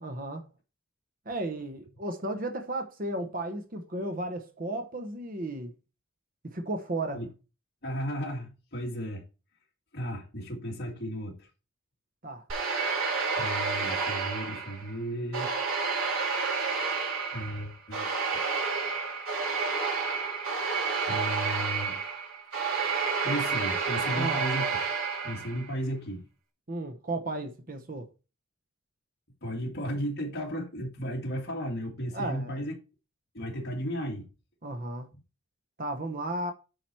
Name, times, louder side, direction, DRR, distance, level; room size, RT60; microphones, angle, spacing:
voice 1, 0.0-0.5 1.3-5.7 6.4-7.2 12.2-12.4 24.1-24.4 26.7-28.1 32.1-32.7 34.6-35.1 35.8-36.5, right 2 dB, 40° right, 0.9 m, -34 dB
voice 2, 7.8-9.2 9.9-11.5 13.4-15.5 17.3-18.1 21.0-22.0 23.2-24.8 25.2-26.2 29.4-32.7 33.3-34.3, equal, 50° left, 2.3 m, -34 dB
sound 1, 12.5-14.9 15.3-25.6, right 5 dB, 80° right, 2.5 m, -30 dB
8.6 x 4.9 x 4.5 m
head